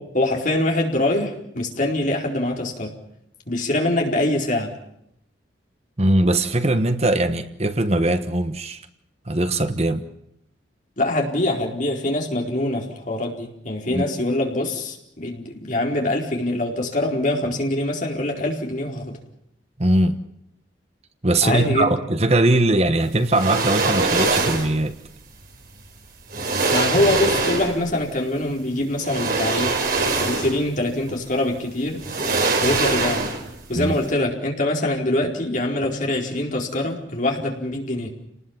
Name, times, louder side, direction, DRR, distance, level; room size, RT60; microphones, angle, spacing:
voice 1, 0.1-2.9 3.5-4.8 11.0-19.2 21.4-21.9 26.7-29.8 30.1-32.0 32.6-33.3 33.7-38.1, left 1 dB, 45° left, 1 dB, 4.5 m, -24 dB
voice 2, 6.0-8.8 9.3-10.0 13.9-14.0 19.8-20.2 21.2-25.0 33.7-33.9, right 1 dB, 35° right, 10 dB, 1.2 m, -20 dB
sound 1, 23.3-24.8 25.8-25.9 26.3-27.9 29.0-30.7 31.1-31.2 32.0-33.6 33.9-34.0, right 3 dB, 50° right, 4.1 m, -23 dB
30.0 x 19.5 x 7.3 m, 0.76 s
head